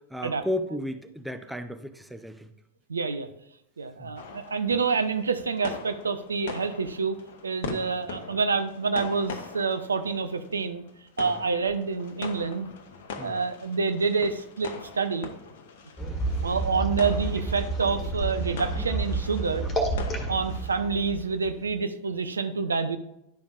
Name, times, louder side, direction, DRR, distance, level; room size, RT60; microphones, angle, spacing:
voice 1, 0.1-2.5 4.0-4.1 7.6-7.8 13.2-13.4 20.2-20.3, left 1 dB, 5° right, 8 dB, 0.5 m, -34 dB
voice 2, 2.9-3.3 3.8-7.2 7.4-10.8 11.2-12.7 13.2-15.3 16.4-19.6 20.3-23.0, right 5 dB, 75° right, 9 dB, 0.5 m, -27 dB
sound 1, 4.2-21.2, left 5 dB, 55° left, 0.8 m, -42 dB
sound 2, 16.0-21.8, right 2 dB, 20° left, 1.8 m, -30 dB
11.5 x 5.1 x 2.5 m, 0.84 s
figure-of-eight pair, 90°, 0 cm